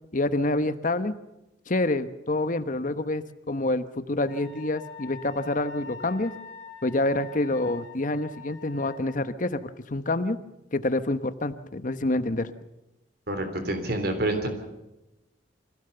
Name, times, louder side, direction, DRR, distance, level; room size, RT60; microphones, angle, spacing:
voice 1, 0.1-1.1 1.7-6.3 6.8-9.6 9.9-10.4 10.7-12.5, left 2 dB, 45° left, 11 dB, 1.1 m, -27 dB
Wind instrument woodwind instrument, 4.3-9.2, left 4 dB, 80° left, 3.6 m, -44 dB
voice 2, 13.3-14.5, right 1 dB, 60° right, 7 dB, 3.5 m, -27 dB
25.0 x 16.5 x 6.9 m, 0.94 s
head